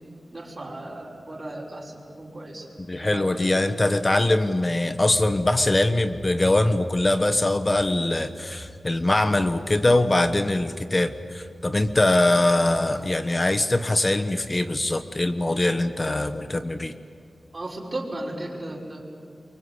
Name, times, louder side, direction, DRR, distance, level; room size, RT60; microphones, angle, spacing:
voice 1, 0.3-2.7 3.0-3.7 17.5-19.0, right 1 dB, 35° right, -4 dB, 5.9 m, -35 dB
voice 2, 2.9-16.9, left 2 dB, 30° left, 9 dB, 1.2 m, -22 dB
sound 1, 5.1-16.1, equal, 5° right, 2.0 m, -43 dB
28.5 x 24.0 x 8.3 m, 2.2 s
wide cardioid pair, 85°, 0 cm